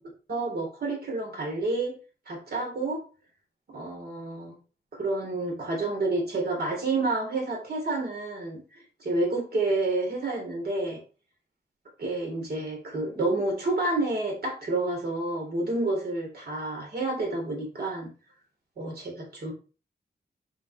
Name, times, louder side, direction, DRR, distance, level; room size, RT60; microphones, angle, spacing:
voice 1, 0.3-1.9 2.3-3.0 3.7-4.6 4.9-11.0 12.0-18.1 18.8-19.5, right 2 dB, 65° right, 0 dB, 3.3 m, -29 dB
7.5 x 5.0 x 3.2 m, 0.35 s
wide cardioid pair, 160°, 17 cm